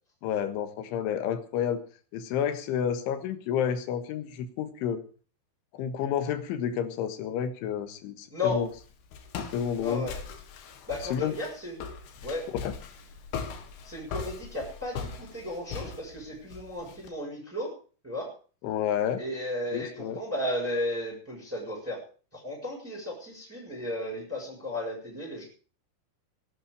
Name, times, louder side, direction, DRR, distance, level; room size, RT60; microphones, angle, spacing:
voice 1, 0.2-1.8 2.1-5.0 5.7-8.7 9.4-10.1 11.1-11.4 12.6-12.7 18.6-19.2 19.7-20.2, left 8 dB, 85° left, 10 dB, 3.9 m, -30 dB
voice 2, 8.3-8.7 9.8-10.2 10.9-11.8 12.2-12.4 13.8-17.8 18.0-18.3 19.2-22.0 22.3-25.4, left 1 dB, 5° right, -4 dB, 6.7 m, -34 dB
Walk footsteps, 8.5-17.1, left 6 dB, 60° left, 3.4 m, -40 dB
19.5 x 12.0 x 4.9 m, 0.40 s
omnidirectional pair, 5.4 m